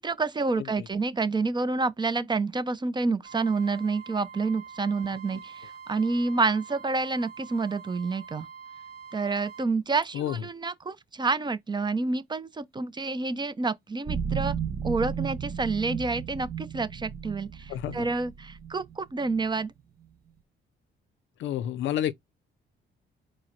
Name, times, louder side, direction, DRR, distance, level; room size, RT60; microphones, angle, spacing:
voice 1, 0.0-8.5 9.1-14.5 14.8-19.7, right 3 dB, 20° right, 0.5 m, -28 dB
voice 2, 0.6-0.9 10.1-10.4 17.7-18.0 21.4-22.1, left 11 dB, 75° left, 0.5 m, -30 dB
sound 1, 3.3-9.7 14.1-20.1, right 7 dB, 50° right, 0.8 m, -37 dB
4.6 x 2.1 x 4.3 m
cardioid pair, 90°, 20 cm